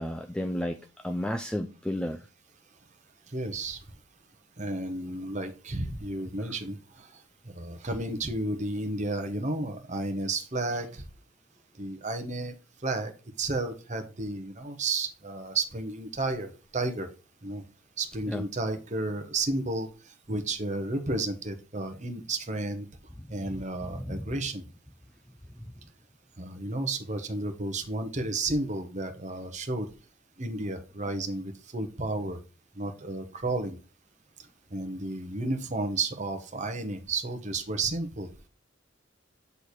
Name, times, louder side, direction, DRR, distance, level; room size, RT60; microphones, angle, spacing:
voice 1, 0.0-2.2 18.3-18.4 23.8-24.2, left 1 dB, 5° left, 0.3 m, -32 dB
voice 2, 3.3-3.8 4.6-11.0 11.8-12.5 12.8-13.1 13.4-17.1 17.4-17.6 18.0-22.9 23.3-24.6 26.4-29.9 30.4-32.4 32.8-33.8 34.7-38.3, right 2 dB, 35° right, 1.0 m, -32 dB
8.1 x 3.3 x 4.3 m
head